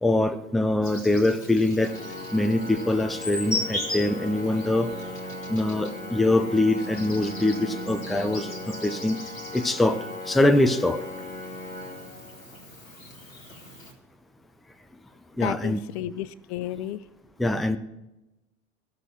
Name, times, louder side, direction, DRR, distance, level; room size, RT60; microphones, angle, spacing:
voice 1, 0.0-1.9 2.3-4.9 5.5-9.2 9.5-11.0 15.4-15.8 17.4-17.8, left 1 dB, ahead, 9 dB, 0.5 m, -23 dB
Insect, 0.8-13.9, left 1 dB, 85° left, 1.5 m, -39 dB
Organ, 1.8-12.7, left 1 dB, 20° left, 1.6 m, -38 dB
sound 1, 2.4-8.3, right 3 dB, 70° right, 3.9 m, -52 dB
voice 2, 15.4-17.0, left 12 dB, 55° left, 17 dB, 0.6 m, -32 dB
14.0 x 6.6 x 7.5 m, 0.98 s
figure-of-eight pair, 70°, 39 cm